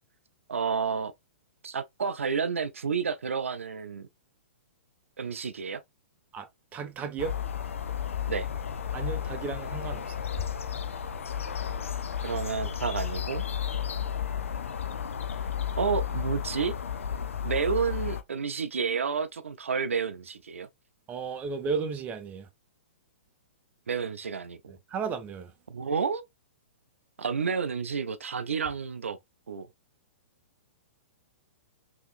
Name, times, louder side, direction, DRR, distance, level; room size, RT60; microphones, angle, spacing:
voice 1, 0.5-1.1 1.6-4.1 5.2-5.8 8.3-8.5 12.2-13.4 15.8-16.7 17.4-20.7 23.9-24.6 25.7-26.2 27.2-29.2 29.5-29.7, right 6 dB, 90° right, 0.4 m, -30 dB
voice 2, 6.3-7.4 8.9-10.2 21.1-22.5 24.9-25.5, right 5 dB, 20° right, 0.7 m, -34 dB
sound 1, 7.2-18.2, left 9 dB, 80° left, 0.5 m, -33 dB
3.6 x 2.9 x 2.4 m
hypercardioid pair, 125°, 7 cm